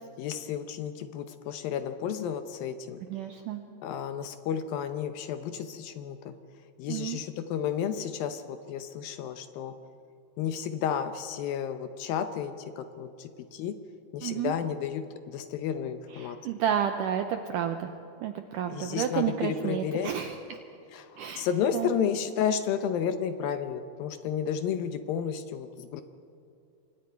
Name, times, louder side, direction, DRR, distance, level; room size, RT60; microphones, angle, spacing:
voice 1, 0.2-3.0 3.8-6.3 6.8-9.8 10.4-13.8 14.1-16.4 18.7-20.1 20.9-26.0, left 8 dB, 75° left, 9 dB, 2.3 m, -32 dB
voice 2, 3.1-3.6 6.9-7.2 14.2-14.5 16.1-17.9 18.2-20.6 21.2-21.5 21.7-22.1, right 9 dB, 85° right, 6 dB, 1.9 m, -31 dB
28.0 x 24.5 x 4.6 m, 2.6 s
omnidirectional pair, 4.7 m